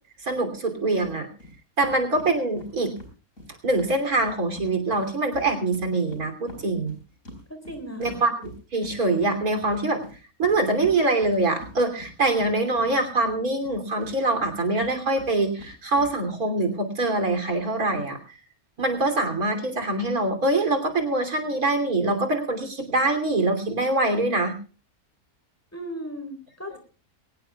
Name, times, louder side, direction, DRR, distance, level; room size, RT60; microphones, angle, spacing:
voice 1, 0.2-1.3 1.8-2.9 3.6-6.9 8.0-10.0 10.4-18.4 18.8-24.5, right 2 dB, 90° right, 5 dB, 3.5 m, -24 dB
sound 1, 1.0-1.1 1.4-1.5 1.8-4.7 4.9-13.3 13.6-16.1, equal, 65° left, 5.2 m, -44 dB
voice 2, 7.5-8.2 25.7-26.8, equal, 10° left, 6 dB, 4.0 m, -36 dB
23.0 x 18.5 x 2.3 m, 0.36 s
omnidirectional pair, 1.5 m